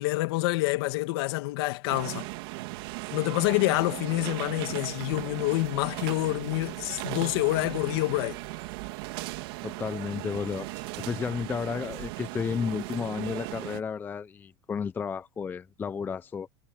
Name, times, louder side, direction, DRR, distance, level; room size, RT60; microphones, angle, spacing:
voice 1, 0.0-2.3 3.1-8.4, left 20 dB, 65° left, 2.0 m, -27 dB
sound 1, 1.9-13.8, right 21 dB, 65° right, 2.3 m, -37 dB
voice 2, 9.6-16.5, left 6 dB, 15° left, 0.5 m, -32 dB
supercardioid pair, 150°, 14 cm